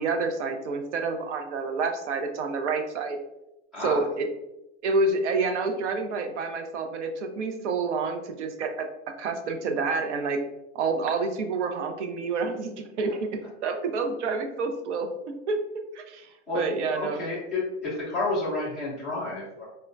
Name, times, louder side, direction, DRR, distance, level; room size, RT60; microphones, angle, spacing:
voice 1, 0.0-3.2 3.8-4.3 4.8-8.9 9.2-10.4 10.7-15.1 15.5-15.6 15.9-17.2, right 4 dB, 75° right, 6 dB, 0.6 m, -28 dB
voice 2, 3.7-4.1 16.5-19.6, left 2 dB, ahead, -9 dB, 0.4 m, -30 dB
4.2 x 2.2 x 2.5 m, 0.92 s
supercardioid pair, 165°, 36 cm